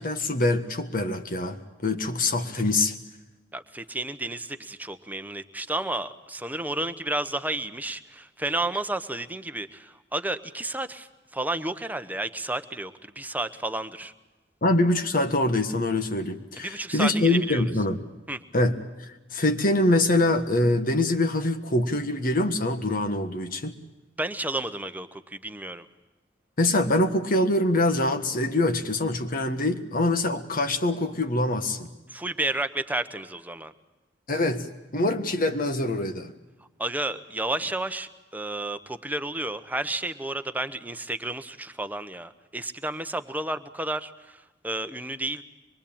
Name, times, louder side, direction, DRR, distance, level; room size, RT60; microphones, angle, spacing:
voice 1, 0.0-2.9 14.6-18.0 18.5-18.8 19.3-23.7 26.6-31.9 34.3-34.7 34.9-36.3, left 2 dB, 50° left, 8 dB, 1.6 m, -24 dB
voice 2, 3.5-14.1 16.6-17.6 18.3-18.4 24.2-25.9 32.1-33.7 36.8-45.4, right 2 dB, 10° right, 9 dB, 1.0 m, -31 dB
24.5 x 22.5 x 8.8 m, 1.1 s
head